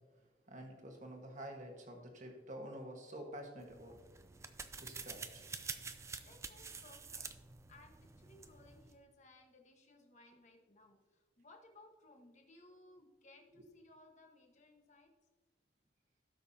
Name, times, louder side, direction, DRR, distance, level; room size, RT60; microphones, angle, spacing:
voice 1, 0.5-4.0 4.8-5.5, right 1 dB, 40° right, 2 dB, 1.4 m, -49 dB
sound 1, 3.6-9.0, right 5 dB, 15° right, 0.4 m, -48 dB
voice 2, 6.2-7.3 7.7-15.1, left 2 dB, 40° left, 2 dB, 1.3 m, -62 dB
17.0 x 6.1 x 2.8 m, 1.3 s
head